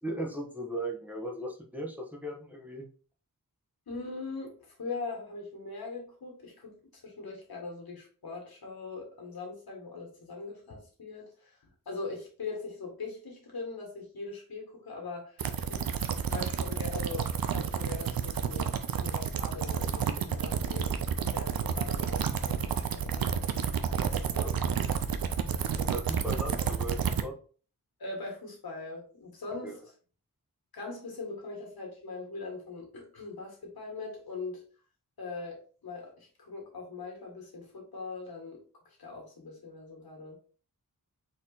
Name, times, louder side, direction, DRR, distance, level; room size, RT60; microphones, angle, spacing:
voice 1, 0.0-2.9 24.4-24.6 25.7-27.3 29.6-29.8, right 1 dB, 5° right, 0 dB, 0.9 m, -37 dB
voice 2, 3.9-6.7 7.0-11.6 11.8-15.4 15.7-18.7 19.0-20.9 21.3-23.5 24.0-24.8 28.0-29.8 30.7-34.6 35.2-38.6 38.8-40.4, left 3 dB, 90° left, 0 dB, 1.7 m, -41 dB
sound 1, 15.4-27.2, right 7 dB, 80° right, 0.5 m, -30 dB
4.3 x 2.9 x 3.9 m, 0.40 s
wide cardioid pair, 90°, 35 cm